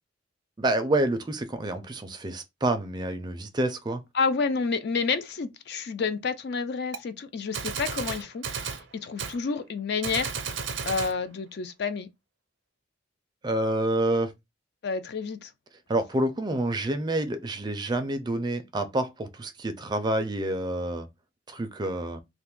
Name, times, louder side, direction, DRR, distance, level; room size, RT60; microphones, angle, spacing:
voice 1, 0.6-4.0 13.4-14.3 15.9-21.1 21.5-22.2, right 1 dB, 25° right, 0.4 m, -28 dB
voice 2, 4.1-10.3 10.8-12.1 14.8-15.5, left 5 dB, 60° left, 0.4 m, -29 dB
Gunshot gunfire, 6.9-7.0 7.5-8.8 9.2-9.4 10.0-11.2, right 6 dB, 85° right, 0.6 m, -33 dB
2.5 x 2.3 x 3.6 m
head